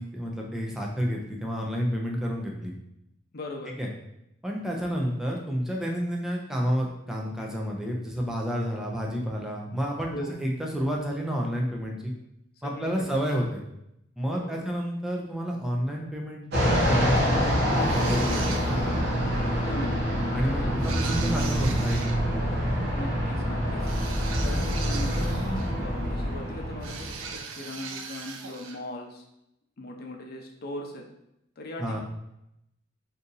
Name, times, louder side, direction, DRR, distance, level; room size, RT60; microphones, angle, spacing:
voice 1, 0.0-2.7 3.8-3.9 4.4-12.1 12.6-13.6 14.2-18.6 20.3-22.0 31.8-32.0, equal, 5° right, -1 dB, 0.5 m, -30 dB
voice 2, 3.3-3.8 10.1-10.4 12.6-13.1 14.3-14.7 19.5-20.3 20.6-21.0 22.9-23.8 24.4-29.2 29.8-31.0 31.6-32.0, left 1 dB, 50° left, 1 dB, 0.6 m, -39 dB
Fixed-wing aircraft airplane, 16.5-27.4, equal, 55° right, 0.9 m, -26 dB
sound 1, 17.8-19.0 20.8-22.2 23.8-25.9 26.8-28.8, right 6 dB, 85° right, 0.4 m, -39 dB
2.7 x 2.5 x 3.9 m, 0.82 s
head